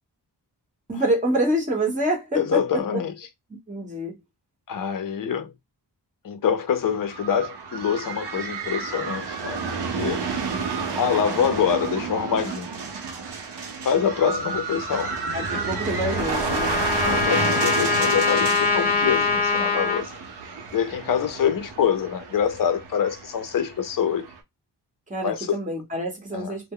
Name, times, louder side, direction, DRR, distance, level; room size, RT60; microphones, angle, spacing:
voice 1, 0.9-2.6 3.7-4.1 15.3-16.8 25.1-26.7, right 1 dB, 20° right, 1.0 m, -26 dB
voice 2, 2.3-3.1 4.7-5.5 6.2-10.2 11.0-12.7 13.8-15.1 17.0-20.1 20.7-24.3 25.2-25.6 26.3-26.5, left 7 dB, 55° left, 0.6 m, -25 dB
sound 1, 6.7-24.4, right 4 dB, 75° right, 0.7 m, -31 dB
Trumpet, 15.5-20.0, left 4 dB, 20° left, 0.8 m, -23 dB
2.1 x 2.0 x 3.5 m
wide cardioid pair, 110°, 40 cm